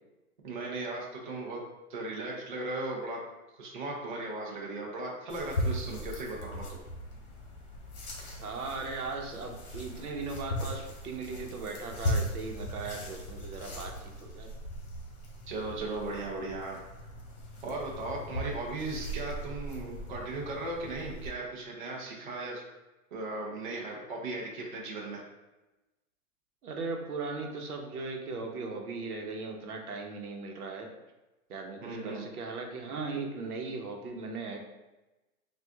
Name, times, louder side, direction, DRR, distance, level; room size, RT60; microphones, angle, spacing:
voice 1, 0.4-1.6 1.9-3.2 3.6-6.6 15.5-16.8 17.6-22.6 23.1-25.2 31.8-32.2, right 2 dB, 35° right, -2 dB, 0.6 m, -37 dB
sound 1, 5.3-21.3, equal, 50° left, 1.3 m, -38 dB
voice 2, 8.4-14.5 26.6-30.9 31.5-34.6, right 3 dB, 85° right, 2 dB, 1.0 m, -38 dB
6.0 x 2.5 x 2.3 m, 1.0 s
hypercardioid pair, 175°, 44 cm